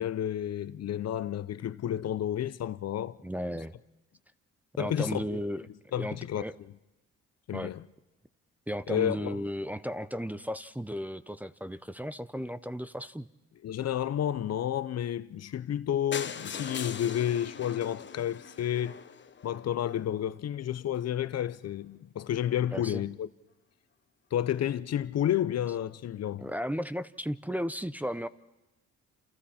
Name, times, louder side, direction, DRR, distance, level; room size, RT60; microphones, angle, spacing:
voice 1, 0.0-3.2 4.8-5.3 5.9-6.4 7.5-7.8 8.9-9.4 13.6-19.0 19.4-23.3 24.3-26.5, left 10 dB, 55° left, 0.8 m, -31 dB
voice 2, 3.2-3.7 4.8-5.7 5.9-6.6 7.5-7.7 8.7-13.3 22.7-23.0 26.4-28.3, equal, 5° right, 0.7 m, -35 dB
sound 1, 16.1-20.0 20.6-20.7 21.0-21.1 21.4-21.5 21.6-21.7, left 6 dB, 40° left, 1.2 m, -41 dB
28.5 x 28.5 x 4.4 m
cardioid pair, 90°, 30 cm